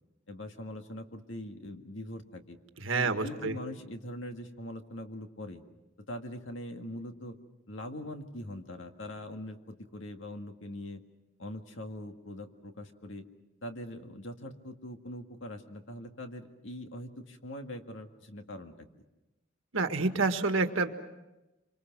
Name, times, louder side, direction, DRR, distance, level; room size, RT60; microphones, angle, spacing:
voice 1, 0.3-2.6 2.9-5.6 6.1-7.4 7.7-11.0 11.4-13.3 13.6-18.9, left 1 dB, 75° left, 5 dB, 1.9 m, -42 dB
voice 2, 2.8-3.5 19.7-20.9, right 3 dB, 90° right, 7 dB, 1.6 m, -28 dB
27.0 x 25.0 x 6.1 m, 0.99 s
head